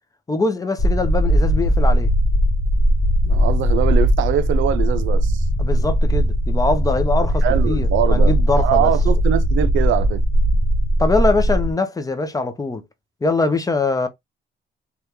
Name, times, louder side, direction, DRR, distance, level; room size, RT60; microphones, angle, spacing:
voice 1, 0.3-2.1 5.6-8.9 11.0-12.8 13.2-14.1, left 3 dB, 20° left, 0.6 m, -22 dB
sound 1, 0.8-11.7, equal, 35° left, 1.0 m, -18 dB
voice 2, 3.2-5.4 7.4-10.2, right 11 dB, 75° right, 0.5 m, -22 dB
3.3 x 2.3 x 2.9 m
cardioid pair, 90°, 20 cm